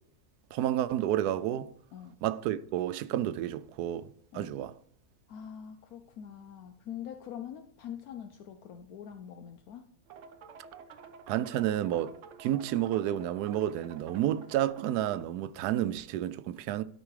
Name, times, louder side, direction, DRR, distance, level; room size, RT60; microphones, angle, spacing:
voice 1, 0.5-1.7 2.2-4.7 11.3-12.1 12.4-16.8, right 12 dB, 90° right, 1.1 m, -30 dB
voice 2, 5.3-9.8, left 9 dB, 75° left, 1.2 m, -44 dB
sound 1, 10.1-15.2, right 5 dB, 60° right, 0.9 m, -50 dB
12.5 x 4.8 x 4.8 m
omnidirectional pair, 1.6 m